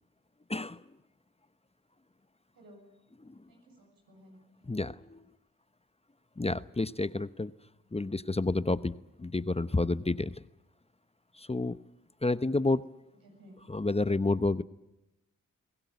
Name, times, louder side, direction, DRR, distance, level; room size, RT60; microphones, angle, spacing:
voice 1, 0.5-0.8 3.2-3.4 4.7-5.3 6.4-7.5 7.9-10.4 11.3-11.8 12.2-12.8 13.7-14.6, left 2 dB, 20° left, 14 dB, 0.9 m, -30 dB
voice 2, 2.5-2.9 3.5-4.8 13.2-13.6, equal, 90° right, 1 dB, 7.6 m, -56 dB
22.5 x 17.0 x 9.4 m, 0.94 s
supercardioid pair, 40°, 34 cm